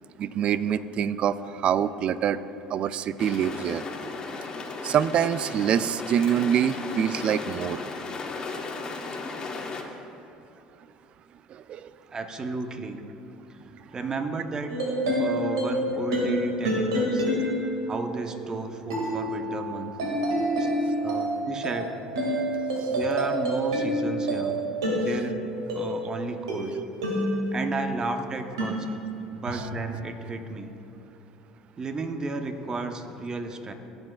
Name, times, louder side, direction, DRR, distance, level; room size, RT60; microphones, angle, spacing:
voice 1, 0.2-2.4 2.7-3.8 4.8-7.8 11.5-11.9 29.5-29.6, right 9 dB, 50° right, 15 dB, 0.4 m, -25 dB
sound 1, 3.2-9.8, left 3 dB, 35° left, 1.2 m, -35 dB
voice 2, 12.1-13.0 13.9-14.7 15.0-17.3 17.9-19.9 20.6-20.7 21.0-21.9 22.9-24.6 25.0-25.4 25.7-26.8 27.5-28.9 29.3-30.7 31.8-33.7, right 3 dB, 30° right, 6 dB, 1.0 m, -33 dB
sound 2, 14.7-28.1 28.6-29.8, equal, 85° right, 2.0 m, -28 dB
15.5 x 8.0 x 2.4 m, 2.8 s
hypercardioid pair, 70°, 2 cm